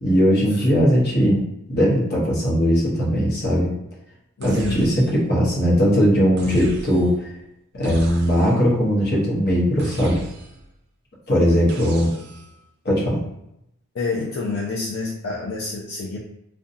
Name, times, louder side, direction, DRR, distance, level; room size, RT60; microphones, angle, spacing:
voice 1, 0.0-1.4 1.7-3.7 4.4-7.1 7.7-10.2 11.3-12.1 12.8-13.2, equal, 50° left, -4 dB, 0.8 m, -19 dB
voice 2, 4.4-5.0 11.5-12.1 13.9-16.2, left 3 dB, 70° left, -4 dB, 0.4 m, -29 dB
sound 1, 4.4-5.3 6.4-7.2 7.8-8.7 9.8-10.7 11.7-12.6, right 2 dB, 50° right, 0.4 m, -37 dB
2.6 x 2.2 x 2.6 m, 0.80 s
head